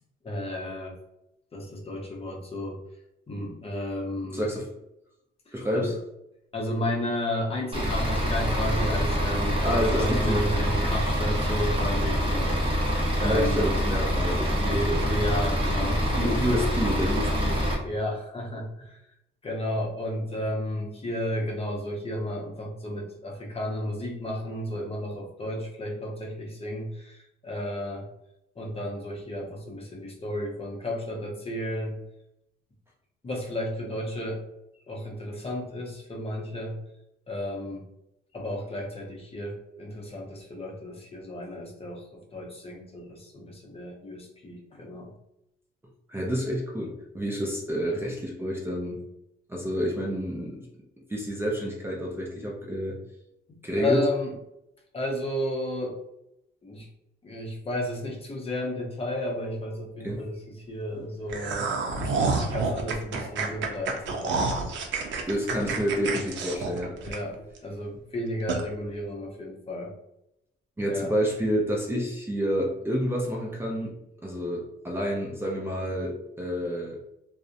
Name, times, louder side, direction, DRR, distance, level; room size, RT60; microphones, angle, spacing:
voice 1, 0.2-1.0 1.5-2.8 3.3-4.4 5.5-5.9 6.5-12.5 13.2-13.6 14.6-16.1 17.8-19.0 19.4-28.1 28.6-32.0 33.2-34.4 34.9-36.8 37.3-37.8 38.3-45.1 47.9-48.0 53.8-54.3 54.9-56.0 56.6-56.9 57.2-64.7 67.0-69.9 70.9-71.1, left 1 dB, 30° left, -1 dB, 0.6 m, -33 dB
voice 2, 4.3-4.7 5.5-5.9 9.6-10.4 12.4-12.5 13.2-15.1 16.0-17.7 46.1-49.0 49.5-50.7 51.1-53.0 53.6-54.0 60.0-60.2 65.3-66.9 70.8-73.9 74.2-77.0, equal, 10° right, -2 dB, 0.5 m, -29 dB
Bus / Idling, 7.7-17.7, equal, 25° right, 0.8 m, -26 dB
sound 1, 61.3-67.6 67.9-68.0 68.5-68.6, right 4 dB, 70° right, 0.5 m, -29 dB
2.5 x 2.0 x 2.5 m, 0.83 s
cardioid pair, 90°, 20 cm